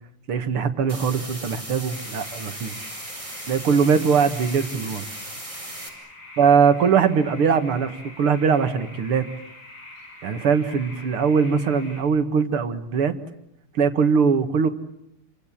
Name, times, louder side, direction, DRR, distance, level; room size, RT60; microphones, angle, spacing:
voice 1, 0.3-2.8 3.5-5.0 6.4-9.3 10.2-13.1 13.7-14.7, right 6 dB, 85° right, 9 dB, 2.7 m, -21 dB
sound 1, 0.9-5.9, right 1 dB, 15° right, 5.2 m, -37 dB
sound 2, 1.9-12.0, left 2 dB, 60° left, 7.5 m, -45 dB
29.0 x 25.5 x 7.5 m, 0.78 s
omnidirectional pair, 2.3 m